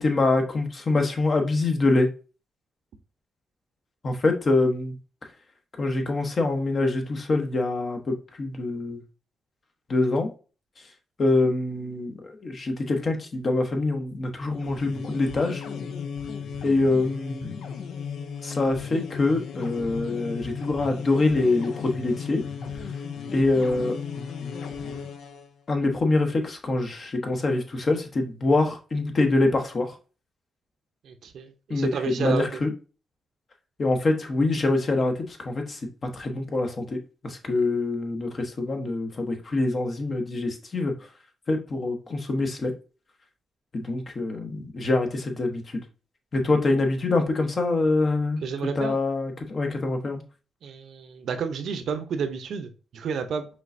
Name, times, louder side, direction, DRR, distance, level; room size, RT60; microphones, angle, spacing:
voice 1, 0.0-2.1 4.0-4.9 5.8-9.0 9.9-10.3 11.2-15.6 16.6-17.5 18.4-22.4 23.3-23.9 25.7-30.0 31.7-32.7 33.8-35.8 36.1-37.0 37.2-40.9 41.5-42.7 43.7-45.8 46.3-48.4 48.8-50.2, left 2 dB, 40° left, 0.9 m, -25 dB
sound 1, 14.5-25.5, left 6 dB, 80° left, 0.5 m, -35 dB
voice 2, 31.0-32.6 48.4-49.0 50.6-53.5, right 6 dB, 70° right, 0.6 m, -31 dB
5.2 x 3.3 x 2.5 m
cardioid pair, 100°, 0 cm